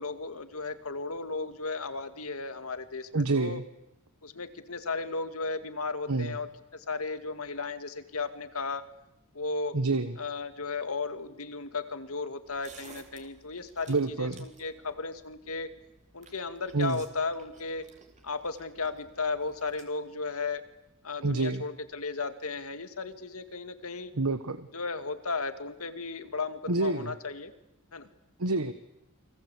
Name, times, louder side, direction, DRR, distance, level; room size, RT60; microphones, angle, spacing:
voice 1, 0.0-3.6 4.2-8.8 9.3-9.7 10.2-15.7 16.1-17.9 18.2-20.7 21.0-24.2 24.7-27.5 27.9-28.1, left 4 dB, 70° left, 9 dB, 2.3 m, -35 dB
voice 2, 3.1-3.6 6.1-6.3 9.7-10.2 13.9-14.5 16.7-17.0 21.2-21.6 24.1-24.7 26.7-27.1 28.4-28.7, right 3 dB, 80° right, 11 dB, 1.3 m, -28 dB
sound 1, 12.4-19.8, right 4 dB, 35° right, 3.7 m, -56 dB
29.5 x 24.0 x 8.4 m, 0.88 s
head